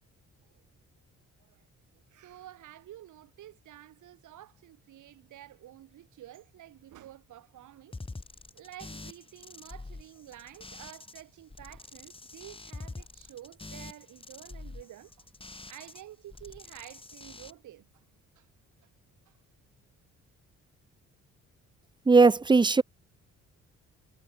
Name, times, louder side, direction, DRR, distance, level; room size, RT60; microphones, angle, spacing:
voice 1, 2.1-7.9 8.5-15.3 15.7-18.0 18.4-18.5, right 13 dB, 80° right, 5.8 m, -50 dB
sound 1, 7.9-11.2 11.5-16.0 16.3-17.5, left 3 dB, 20° left, 3.8 m, -45 dB
voice 2, 22.1-22.8, right 4 dB, 15° right, 0.6 m, -19 dB
cardioid pair, 90°, 30 cm